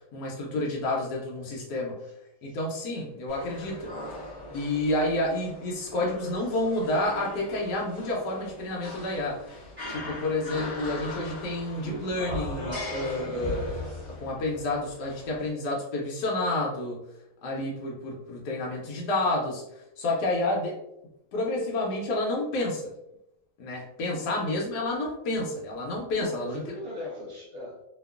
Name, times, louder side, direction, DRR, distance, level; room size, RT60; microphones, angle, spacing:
voice 1, 0.0-1.9 2.4-4.2 4.5-9.6 9.9-13.6 14.2-17.0 17.4-19.6 20.0-20.8 21.3-22.8 23.6-26.6, left 2 dB, 75° left, -3 dB, 1.1 m, -29 dB
sound 1, 3.3-15.5, left 1 dB, 20° right, 0.9 m, -38 dB
voice 2, 24.0-24.3 26.1-27.8, left 1 dB, 55° right, -5 dB, 0.7 m, -39 dB
2.9 x 2.3 x 2.3 m, 0.83 s
omnidirectional pair, 1.8 m